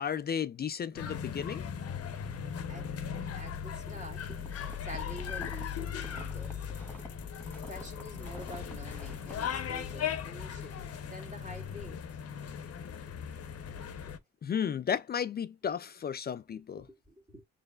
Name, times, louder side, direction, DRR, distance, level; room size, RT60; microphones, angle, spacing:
voice 1, 0.0-1.6 14.4-16.8, left 8 dB, 35° left, 0.4 m, -33 dB
sound 1, 0.9-14.2, left 8 dB, 50° left, 0.8 m, -38 dB
voice 2, 2.6-2.9 3.3-4.5 4.8-6.7 7.7-12.0 13.3-13.4 16.5-17.5, equal, 25° right, 2.0 m, -48 dB
sound 2, 4.3-9.6, equal, 5° left, 1.9 m, -49 dB
6.4 x 3.3 x 2.3 m
cardioid pair, 90°, 30 cm